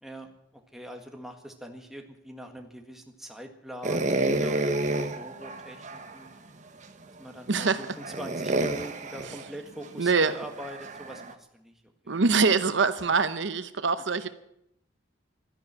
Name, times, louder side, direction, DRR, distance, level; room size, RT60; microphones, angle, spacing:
voice 1, 0.0-6.3 7.1-12.2 13.0-13.2 14.2-14.3, equal, ahead, 3 dB, 1.7 m, -43 dB
sound 1, 3.8-6.2 6.8-6.9 7.5-11.3, right 2 dB, 40° right, 1.1 m, -30 dB
voice 2, 7.5-7.8 10.0-10.3 12.1-14.3, right 4 dB, 65° right, 12 dB, 0.8 m, -24 dB
12.5 x 10.5 x 9.5 m, 0.78 s
head